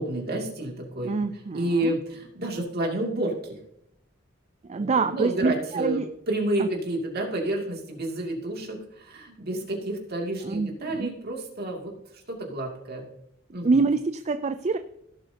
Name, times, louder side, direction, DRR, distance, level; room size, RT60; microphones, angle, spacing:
voice 1, 0.0-1.2 1.5-3.6 4.8-6.0 6.3-13.1 13.5-13.8, right 1 dB, 55° right, 0 dB, 2.6 m, -30 dB
voice 2, 1.0-1.9 4.7-6.1 6.6-6.7 10.4-11.1 13.6-14.8, right 4 dB, 35° right, 10 dB, 0.4 m, -26 dB
16.5 x 7.8 x 2.9 m, 0.77 s
head